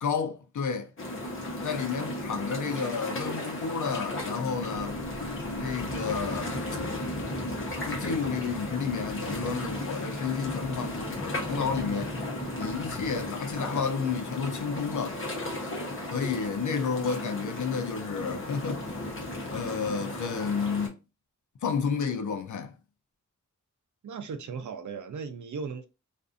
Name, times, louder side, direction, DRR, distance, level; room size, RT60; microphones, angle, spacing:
voice 1, 0.0-0.9 1.6-5.0 5.6-6.6 7.9-12.2 12.6-15.2 16.1-18.8 19.5-21.0 21.6-22.7, left 6 dB, 80° left, 0.5 m, -31 dB
sound 1, 1.0-20.9, left 1 dB, 45° left, 0.8 m, -35 dB
sound 2, 4.7-13.2, equal, 10° right, 0.9 m, -44 dB
voice 2, 24.0-25.9, right 5 dB, 75° right, 0.5 m, -37 dB
2.5 x 2.4 x 2.4 m
wide cardioid pair, 95°, 30 cm